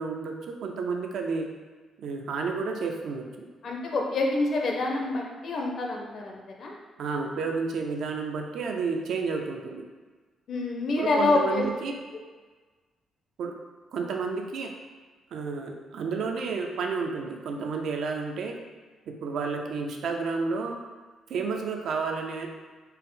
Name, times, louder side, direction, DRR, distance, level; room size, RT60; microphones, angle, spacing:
voice 1, 0.0-1.5 2.0-3.5 7.0-9.8 11.0-11.9 13.4-13.5 13.9-14.7 15.3-18.6 19.1-20.8 21.3-22.6, right 4 dB, 65° right, 3 dB, 0.4 m, -31 dB
voice 2, 3.6-6.7 10.5-11.6, left 2 dB, 45° left, 0 dB, 0.6 m, -27 dB
4.1 x 2.0 x 3.8 m, 1.4 s
cardioid pair, 155°, 0 cm